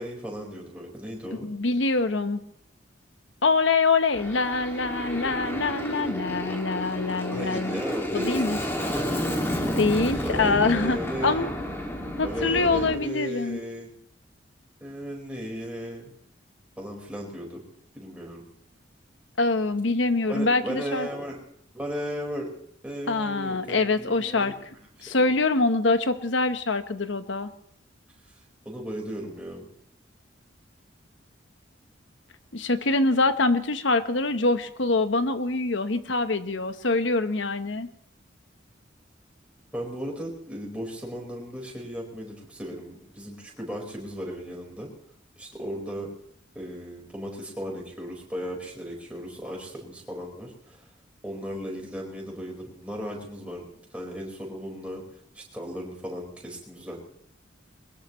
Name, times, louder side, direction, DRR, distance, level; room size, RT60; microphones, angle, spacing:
voice 1, 0.0-1.5 7.3-9.1 10.2-11.6 12.2-13.9 14.8-16.1 16.8-17.6 17.9-18.4 20.3-21.4 21.7-22.5 22.8-25.3 28.6-29.6 39.7-44.9 45.4-46.1 46.5-50.9 51.2-53.6 53.9-55.0 55.3-57.0, equal, 5° right, -2 dB, 4.6 m, -36 dB
voice 2, 1.3-2.4 3.4-7.8 8.1-8.6 9.8-11.5 12.2-13.6 19.4-21.1 23.1-24.5 25.0-27.5 32.5-37.9, left 3 dB, 75° left, 10 dB, 1.1 m, -24 dB
Aircraft, 4.1-12.9, equal, 15° left, 2.2 m, -31 dB
22.0 x 21.0 x 3.1 m, 0.68 s
head